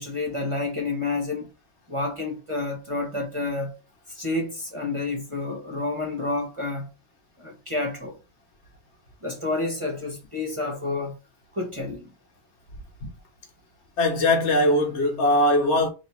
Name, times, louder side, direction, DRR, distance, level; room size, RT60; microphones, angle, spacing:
voice 1, 0.0-1.5 1.9-3.7 4.1-6.9 7.4-8.1 9.2-11.1 11.5-12.0, left 2 dB, 25° right, 0.7 m, -29 dB
voice 2, 14.0-15.9, left 1 dB, 45° left, 1.1 m, -20 dB
3.2 x 2.9 x 4.3 m
omnidirectional pair, 2.1 m